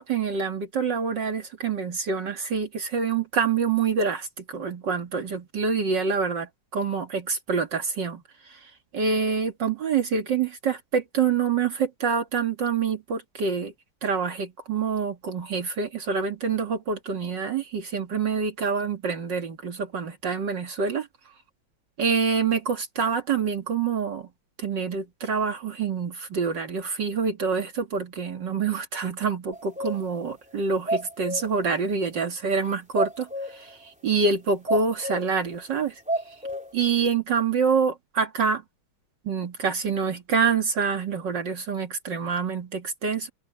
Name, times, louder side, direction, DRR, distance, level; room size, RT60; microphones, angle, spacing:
voice 1, 0.0-13.7 14.0-21.1 22.0-24.3 24.6-36.0 36.7-38.6 39.2-43.3, right 5 dB, 65° right, 2.6 m, -26 dB
sound 1, 29.5-30.2 30.5-30.6 30.9-31.6 32.9-33.7 34.7-35.4 36.1-36.7, right 1 dB, 5° right, 3.4 m, -30 dB
omnidirectional pair, 2.1 m